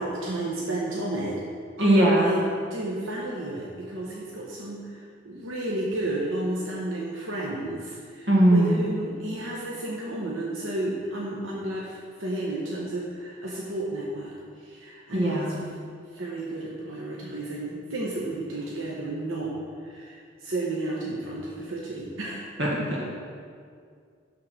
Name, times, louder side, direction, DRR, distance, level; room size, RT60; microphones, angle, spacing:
voice 1, 0.0-1.4 1.8-2.4 2.7-15.5 16.1-19.5 19.8-22.4, right 1 dB, 90° right, -4 dB, 1.1 m, -32 dB
voice 2, 1.8-2.3 8.3-8.9 15.1-15.6 22.6-23.1, right 1 dB, 60° right, -4 dB, 1.9 m, -20 dB
11.0 x 3.8 x 5.9 m, 2.2 s
head